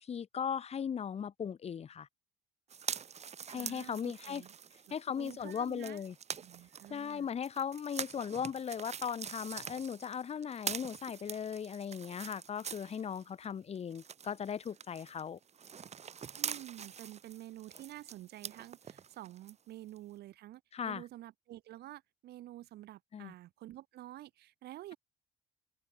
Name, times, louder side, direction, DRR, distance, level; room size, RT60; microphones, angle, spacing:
voice 1, 0.0-2.1 3.5-4.4 4.9-6.1 6.9-15.4 20.7-21.0 23.1-23.3, left 7 dB, 40° left, 1.4 m, -38 dB
sound 1, 2.7-13.5 13.7-19.5 20.0-20.1, right 7 dB, 40° right, 3.4 m, -45 dB
voice 2, 3.5-4.6 4.9-6.0 6.4-7.3 16.4-25.0, right 14 dB, 75° right, 5.5 m, -49 dB
cardioid pair, 110°, 17 cm